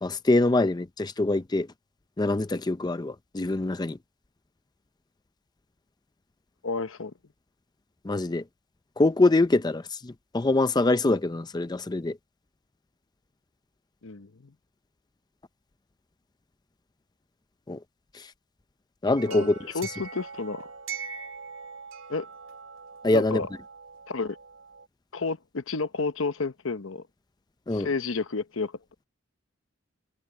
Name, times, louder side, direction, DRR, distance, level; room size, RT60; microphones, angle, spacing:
voice 1, 0.0-1.7 2.2-4.0 8.0-8.4 9.0-12.2 17.7-17.8 18.2-18.3 19.0-19.5 23.0-23.4 27.7-27.9, left 2 dB, 20° left, 0.5 m, -24 dB
voice 2, 6.6-7.1 14.0-14.5 19.3-19.5 19.7-20.7 22.1-22.3 23.1-23.5 24.1-24.4 25.1-27.0 27.7-28.7, left 4 dB, 75° left, 0.9 m, -31 dB
sound 1, 19.2-24.9, right 6 dB, 70° right, 3.3 m, -42 dB
head